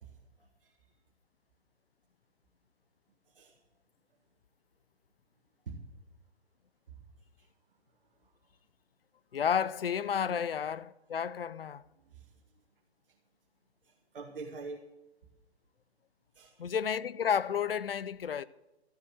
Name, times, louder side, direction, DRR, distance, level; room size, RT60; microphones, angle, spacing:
voice 1, 0.0-0.8 3.3-3.6 5.7-5.8 6.9-7.0 7.4-7.5 8.2-8.3 10.3-10.4 12.1-12.3 13.8-14.8 16.3-16.6, right 4 dB, 55° right, 2.1 m, -46 dB
voice 2, 9.3-11.8 16.6-18.4, left 7 dB, 60° left, 0.7 m, -31 dB
14.0 x 7.5 x 9.0 m
figure-of-eight pair, 130°, 33 cm